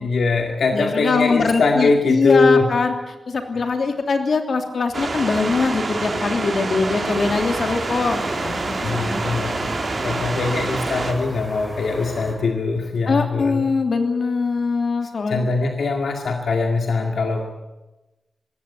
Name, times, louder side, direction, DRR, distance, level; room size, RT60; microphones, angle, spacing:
voice 1, 0.0-2.7 3.5-3.7 8.8-9.6 10.0-13.6 15.3-17.5, left 3 dB, 85° left, 3 dB, 2.2 m, -21 dB
voice 2, 0.7-2.9 3.3-8.7 9.0-9.2 13.1-15.5, left 4 dB, 65° left, 5 dB, 3.1 m, -22 dB
sound 1, 4.9-11.1, right 3 dB, 50° right, 3.7 m, -26 dB
sound 2, 7.1-12.3, equal, ahead, 6.1 m, -35 dB
20.5 x 16.5 x 9.6 m, 1.1 s
wide cardioid pair, 100°, 0 cm